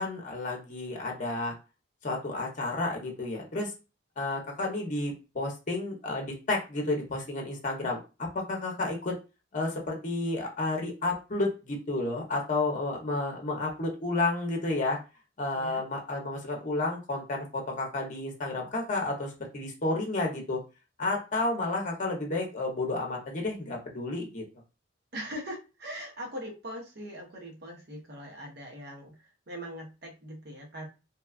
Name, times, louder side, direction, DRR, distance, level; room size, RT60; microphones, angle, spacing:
voice 1, 0.0-1.5 2.0-3.7 4.2-9.1 9.5-15.0 15.4-20.6 21.0-24.4, left 2 dB, 40° left, 1 dB, 0.7 m, -31 dB
voice 2, 15.5-15.9 25.1-30.9, equal, 55° right, -1 dB, 0.9 m, -41 dB
2.8 x 2.3 x 2.3 m, 0.30 s
head